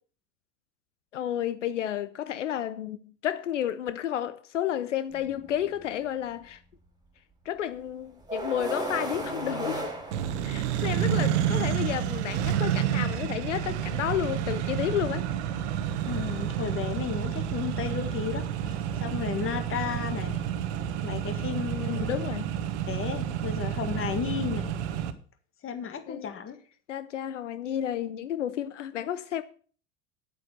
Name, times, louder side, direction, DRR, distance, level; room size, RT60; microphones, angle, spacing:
voice 1, 1.1-6.6 7.4-9.9 10.4-15.3 18.0-18.1 21.8-22.5 26.1-26.3 26.9-29.4, left 10 dB, 90° left, 0.7 m, -31 dB
sound 1, 5.1-5.2 8.3-10.9, right 1 dB, 10° right, 3.3 m, -34 dB
Accelerating revving vroom, 10.1-25.1, right 10 dB, 70° right, 1.3 m, -29 dB
voice 2, 16.1-20.4 21.0-22.2 22.9-24.7 25.6-26.6, left 7 dB, 35° left, 2.0 m, -34 dB
9.6 x 8.2 x 6.7 m
hypercardioid pair, 80°, 35 cm